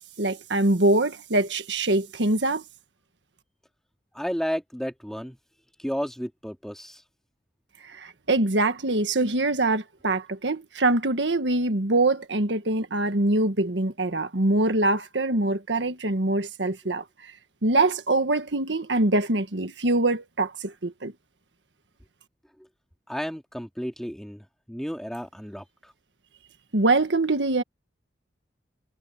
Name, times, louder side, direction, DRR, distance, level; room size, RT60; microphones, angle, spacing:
voice 1, 0.2-2.6 7.9-17.0 17.6-21.1 26.7-27.6, right 2 dB, 90° right, 1.6 m, -24 dB
voice 2, 4.1-5.4 5.8-7.0 23.1-25.9, equal, ahead, 3.1 m, -32 dB
head